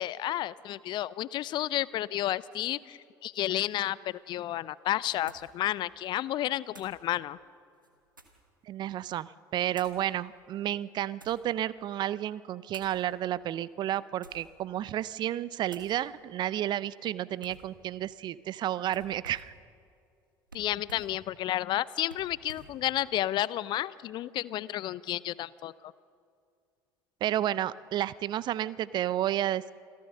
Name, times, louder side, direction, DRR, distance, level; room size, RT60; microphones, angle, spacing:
voice 1, 0.0-7.4 20.5-25.9, left 13 dB, 45° left, 21 dB, 0.5 m, -31 dB
sound 1, 4.1-4.2 5.3-5.6 6.7-7.0 7.7-8.5 9.7-10.0 10.8-11.5 12.7-13.0 14.1-14.6 15.0-15.3 15.7-16.0 17.4-17.7 18.9-19.6 20.5-21.2 22.1-22.8, right 3 dB, 85° right, 1.6 m, -52 dB
voice 2, 8.7-19.5 27.2-29.7, right 12 dB, 45° right, 19 dB, 0.6 m, -31 dB
27.0 x 15.0 x 6.7 m, 2.3 s
figure-of-eight pair, 60°, 11 cm